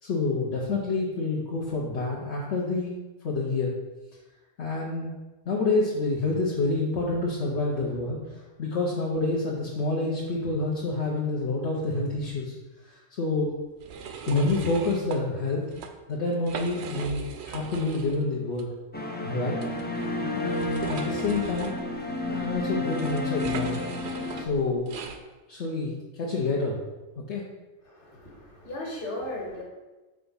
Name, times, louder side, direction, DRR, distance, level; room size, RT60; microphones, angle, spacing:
voice 1, 0.0-3.0 3.2-3.7 4.6-5.1 5.4-12.5 12.8-13.5 14.3-15.6 16.1-18.7 19.2-19.6 20.3-21.8 22.3-23.8 24.3-25.0 25.5-26.7 27.3-27.4, left 3 dB, 70° left, -4 dB, 1.2 m, -28 dB
sound 1, 13.8-15.2 15.6-15.9 16.3-18.2 18.5-18.6 19.6-25.2, right 6 dB, 70° right, 0.8 m, -39 dB
sound 2, 18.9-24.4, left 2 dB, 15° left, 0.4 m, -31 dB
voice 2, 27.8-29.6, left 1 dB, 50° left, -2 dB, 1.8 m, -36 dB
5.0 x 3.5 x 5.5 m, 1.1 s
omnidirectional pair, 1.2 m